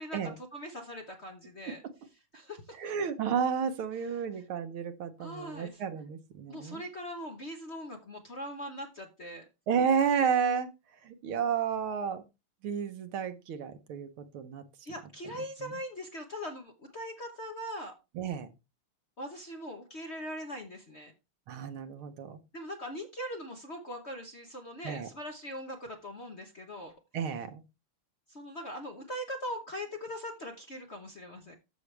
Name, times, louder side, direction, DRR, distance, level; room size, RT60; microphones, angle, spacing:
voice 1, 0.0-1.8 2.3-2.6 4.0-4.4 5.2-5.8 6.5-9.4 14.9-17.9 19.2-21.1 22.5-26.9 28.3-31.6, equal, 40° left, 3 dB, 1.0 m, -41 dB
voice 2, 2.8-6.8 9.7-10.7 11.0-12.2 12.6-14.6 15.6-15.7 18.2-18.5 21.5-22.4 24.8-25.1 27.1-27.6, right 7 dB, 75° right, 9 dB, 1.8 m, -31 dB
13.0 x 6.2 x 3.3 m, 0.27 s
omnidirectional pair, 2.4 m